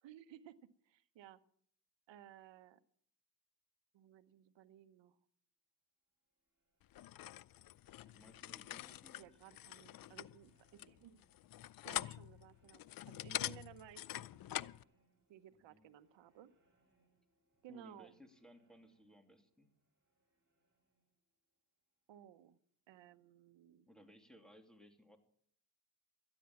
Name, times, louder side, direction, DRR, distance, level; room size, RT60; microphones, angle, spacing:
voice 1, 0.0-1.4 2.1-2.8 3.9-5.2 9.2-11.3 11.8-14.7 15.3-16.5 17.6-18.2 22.1-22.6 22.9-23.9, right 11 dB, 75° right, 13 dB, 1.1 m, -58 dB
sound 1, 6.1-22.7, right 2 dB, 25° right, 6.3 m, -81 dB
sound 2, 6.9-14.8, left 14 dB, 50° left, 0.5 m, -45 dB
voice 2, 8.0-9.4 15.7-15.8 17.7-19.7 23.9-25.2, left 1 dB, ahead, 6 dB, 2.6 m, -61 dB
13.5 x 10.0 x 7.1 m, 0.65 s
cardioid pair, 75°, 44 cm